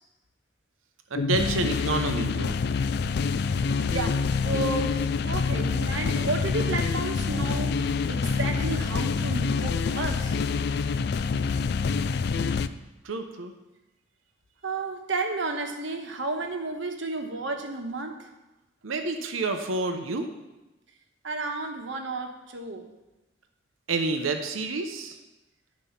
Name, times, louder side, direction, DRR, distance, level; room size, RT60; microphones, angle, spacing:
sound 1, 1.1-12.7, left 5 dB, 50° left, 0.3 m, -26 dB
voice 1, 1.1-2.6 13.0-13.5 18.8-20.3 23.9-25.2, right 3 dB, 85° right, 6 dB, 0.8 m, -29 dB
voice 2, 3.9-10.4 14.6-18.3 21.2-22.9, right 3 dB, 65° right, 4 dB, 1.2 m, -32 dB
11.0 x 5.2 x 5.7 m, 1.0 s
head